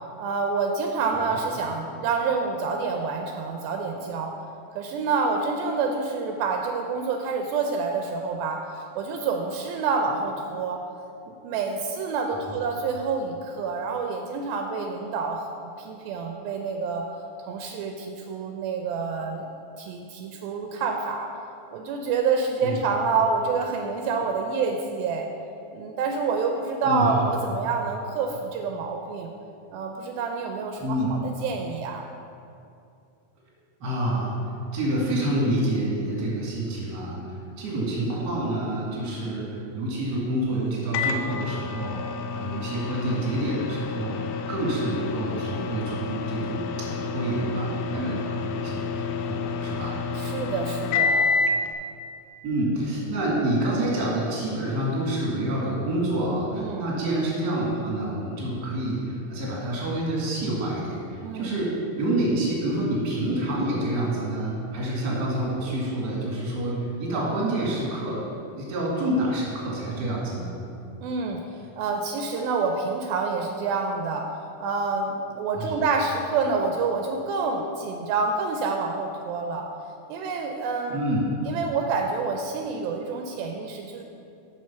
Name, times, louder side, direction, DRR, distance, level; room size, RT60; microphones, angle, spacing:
voice 1, 0.2-4.3 4.8-10.8 11.3-17.0 17.5-19.5 19.8-21.3 21.7-25.3 25.7-29.3 29.7-32.0 47.9-48.2 50.2-51.3 56.5-56.9 61.2-61.5 71.0-71.4 71.8-74.3 74.6-79.7 80.1-81.0 81.5-84.0, right 4 dB, 80° right, 3 dB, 2.3 m, -28 dB
voice 2, 26.8-27.2 30.8-31.2 33.8-34.4 34.7-42.0 42.3-50.0 52.4-61.7 62.0-68.2 68.5-70.5 75.6-75.8 80.9-81.3, right 1 dB, 35° right, -5 dB, 2.0 m, -28 dB
Microwave oven, 40.9-51.7, left 4 dB, 90° left, 2.5 m, -29 dB
6.5 x 6.3 x 5.7 m, 2.5 s
omnidirectional pair, 4.4 m